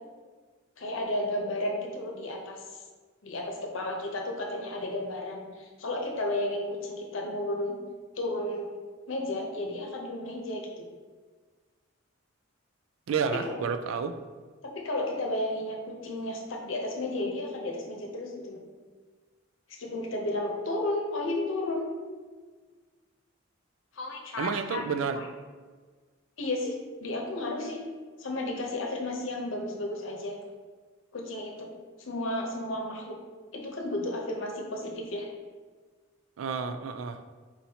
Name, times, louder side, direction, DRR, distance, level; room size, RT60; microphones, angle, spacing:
voice 1, 0.8-2.8 3.2-7.7 8.2-8.7 9.1-10.9 13.4-13.6 14.7-18.6 19.7-21.9 23.9-24.8 25.2-25.3 26.4-27.8 28.2-30.3 31.1-31.7 32.0-33.2 33.5-35.3, left 1 dB, 70° left, 0 dB, 0.8 m, -33 dB
voice 2, 13.1-14.2 24.4-25.2 36.4-37.2, right 6 dB, 75° right, 9 dB, 0.4 m, -30 dB
4.4 x 4.0 x 2.8 m, 1.5 s
head